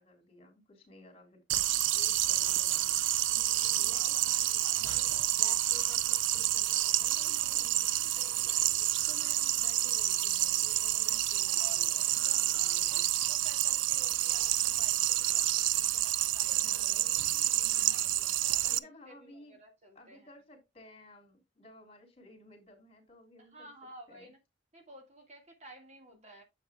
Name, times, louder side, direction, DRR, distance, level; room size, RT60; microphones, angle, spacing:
voice 1, 0.0-1.7 1.9-3.0 3.8-7.7 8.2-13.0 16.6-17.5 18.6-19.6 19.9-23.7 24.1-24.3 26.1-26.2, left 1 dB, 35° left, 3.3 m, -56 dB
sound 1, 1.5-18.8, right 14 dB, 90° right, 0.4 m, -29 dB
voice 2, 3.8-4.2 8.4-8.5 11.6-16.9 17.9-20.3 23.4-24.4 24.7-26.4, right 1 dB, 40° right, 2.1 m, -54 dB
9.2 x 7.7 x 2.4 m
head